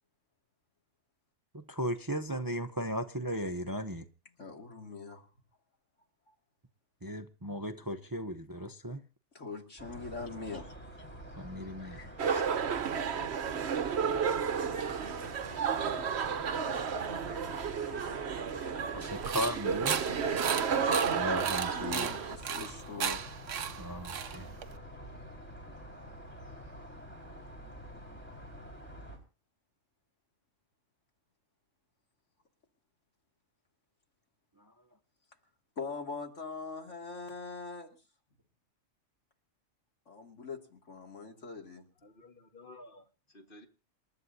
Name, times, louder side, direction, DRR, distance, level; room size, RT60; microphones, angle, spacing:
voice 1, 1.5-4.1 7.0-9.0 11.4-12.0 12.3-12.4 18.9-20.0 21.1-22.1 23.8-24.5, equal, 20° right, 0.7 m, -36 dB
voice 2, 4.4-5.3 9.3-11.0 11.6-12.1 21.7-23.2 35.8-38.0 40.1-41.8, left 4 dB, 80° left, 2.8 m, -42 dB
sound 1, 9.8-29.2, equal, 10° left, 4.5 m, -47 dB
sound 2, 12.2-22.4, right 6 dB, 65° right, 1.1 m, -32 dB
sound 3, 19.0-24.8, right 8 dB, 85° right, 1.2 m, -36 dB
voice 3, 42.0-43.7, left 2 dB, 45° left, 1.9 m, -53 dB
27.5 x 13.0 x 2.7 m
omnidirectional pair, 1.2 m